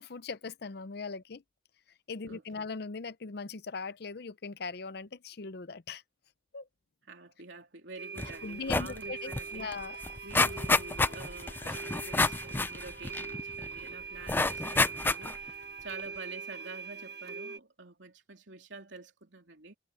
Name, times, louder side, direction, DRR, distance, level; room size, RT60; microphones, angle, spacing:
voice 1, 0.0-1.4 2.1-6.0 6.5-6.7 8.4-10.0, left 4 dB, 55° left, 0.6 m, -40 dB
voice 2, 2.2-2.6 7.1-9.7 10.2-19.8, right 3 dB, 75° right, 3.2 m, -48 dB
sound 1, 8.0-17.6, right 5 dB, 55° right, 1.3 m, -42 dB
sound 2, 8.2-8.3 8.6-9.0 9.3-9.4 9.7-13.7 14.3-15.5 16.0-16.1, left 3 dB, 10° left, 0.3 m, -29 dB
Squeak, 9.0-13.1, left 4 dB, 80° left, 4.4 m, -61 dB
head